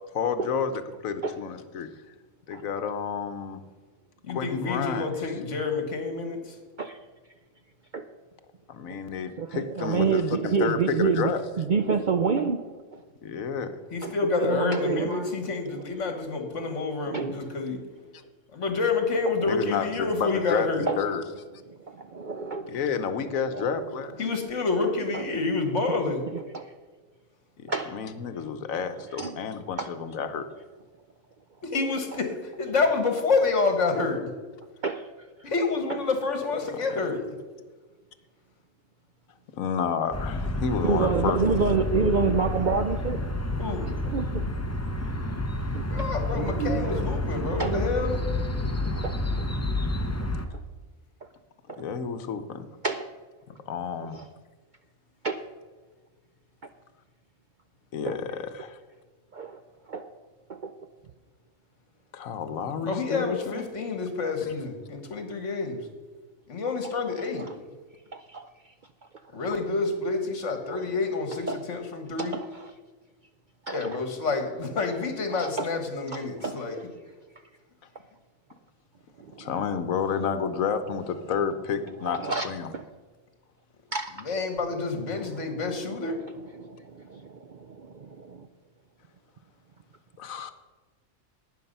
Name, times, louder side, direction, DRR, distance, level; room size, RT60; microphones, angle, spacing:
voice 1, 0.1-0.7 1.0-1.9 2.5-3.6 4.3-5.1 8.7-11.4 13.2-13.8 19.4-21.2 22.7-24.2 27.6-30.5 36.7-37.0 39.5-41.4 51.8-52.7 53.7-54.2 57.9-58.8 62.1-63.6 64.4-64.5 79.4-82.7 90.2-90.5, left 6 dB, 75° left, 10 dB, 1.3 m, -30 dB
voice 2, 4.2-6.4 13.9-17.8 18.5-20.9 24.2-26.2 31.6-34.3 35.4-37.2 43.6-43.9 45.9-48.2 62.8-65.8 66.5-67.5 69.3-72.4 73.7-76.8 84.3-86.2, left 4 dB, 60° left, 6 dB, 1.9 m, -28 dB
voice 3, 9.4-12.6 12.9-13.0 14.0-15.4 15.7-15.9 17.1-17.3 19.2-19.6 20.9-21.0 21.7-23.0 23.3-24.0 24.8-25.3 25.7-25.8 26.3-26.7 27.7-28.0 29.1-29.4 29.8-29.9 34.8-35.1 35.9-36.0 40.8-43.2 43.8-44.4 44.9-45.1 45.7-46.1 46.3-47.1 47.6-47.8 48.9-49.2 51.7-51.8 52.8-53.1 54.1-54.3 55.2-55.4 58.1-58.2 59.3-59.6 59.9-60.1 60.5-60.7 67.2-67.5 68.1-68.5 70.7-70.8 71.3-71.6 72.2-72.7 73.7-74.0 75.3-75.7 76.1-76.8 79.2-79.5 82.0-82.9 83.9-84.1 85.1-86.3 86.6-88.5, right 5 dB, 60° right, 8 dB, 0.5 m, -29 dB
sound 1, 40.1-50.5, left 1 dB, 15° left, 0.5 m, -29 dB
11.5 x 9.3 x 5.4 m, 1.3 s
omnidirectional pair, 1.4 m